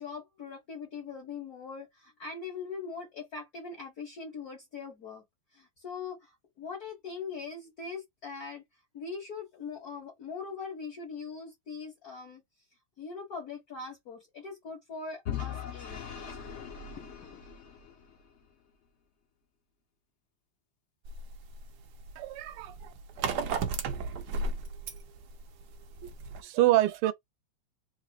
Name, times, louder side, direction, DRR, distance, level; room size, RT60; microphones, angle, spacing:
voice 1, 0.0-5.2 5.5-8.6 8.9-12.4 13.0-16.1 17.0-17.4, left 5 dB, 45° left, 1.8 m, -41 dB
Vehicle / Engine, 15.3-18.3, left 8 dB, 90° left, 0.6 m, -39 dB
sound 1, 21.1-26.4, right 4 dB, 70° right, 1.0 m, -35 dB
voice 2, 22.2-22.9 26.4-27.1, right 15 dB, 90° right, 1.5 m, -26 dB
4.1 x 3.6 x 2.4 m
omnidirectional pair, 2.4 m